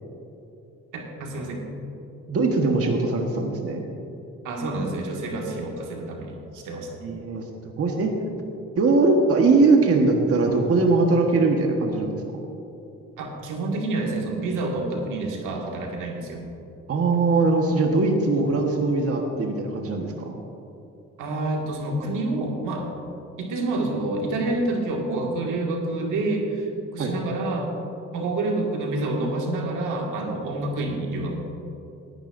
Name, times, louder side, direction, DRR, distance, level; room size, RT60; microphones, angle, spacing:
voice 1, 0.9-1.6 4.4-7.0 13.2-16.4 21.2-22.9 23.4-27.7 28.1-31.3, right 2 dB, 85° right, 0 dB, 2.0 m, -28 dB
voice 2, 2.3-3.8 7.0-7.4 7.8-8.1 8.8-12.4 16.9-20.4 27.0-27.1, right 3 dB, 50° right, 1 dB, 1.4 m, -21 dB
18.0 x 11.5 x 2.6 m, 3.0 s
cardioid pair, 90°, 30 cm